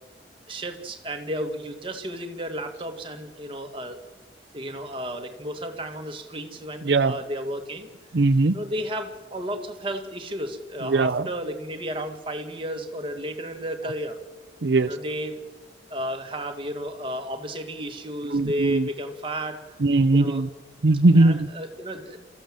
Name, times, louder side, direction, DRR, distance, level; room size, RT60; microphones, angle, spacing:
voice 1, 0.5-4.0 4.5-7.9 8.5-14.2 14.9-15.4 15.9-19.6 20.1-20.5 21.1-22.3, equal, 30° right, 4 dB, 1.9 m, -33 dB
voice 2, 8.1-8.5 10.8-11.3 14.6-14.9 18.3-18.9 19.8-20.5 20.8-21.5, right 2 dB, 70° right, 11 dB, 0.7 m, -19 dB
29.5 x 14.5 x 7.6 m, 1.2 s
head